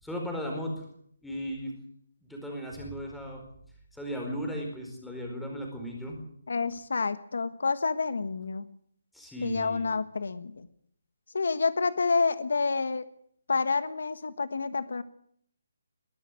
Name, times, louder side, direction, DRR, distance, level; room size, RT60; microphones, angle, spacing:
voice 1, 0.0-0.8 1.2-1.7 2.2-3.4 3.9-6.2 9.1-9.9, equal, ahead, 0 dB, 4.6 m, -36 dB
voice 2, 6.5-8.7 9.4-10.7 11.3-13.1 13.5-15.0, left 4 dB, 75° left, 13 dB, 1.4 m, -28 dB
21.5 x 12.5 x 9.6 m, 0.66 s
hypercardioid pair, 165°, 0 cm